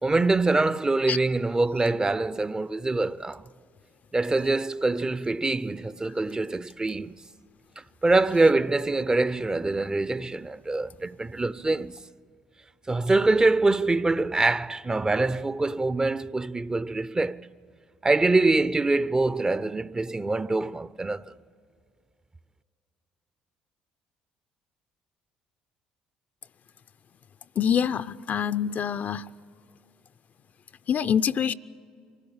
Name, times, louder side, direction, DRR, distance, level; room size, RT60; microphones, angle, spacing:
voice 1, 0.0-3.4 4.1-7.2 8.0-12.0 12.9-17.5 18.0-21.2, right 2 dB, 20° right, 0.5 m, -24 dB
voice 2, 27.6-29.3 30.9-31.5, left 8 dB, 50° left, 0.5 m, -25 dB
24.5 x 15.0 x 8.8 m
hypercardioid pair, 60°, 4 cm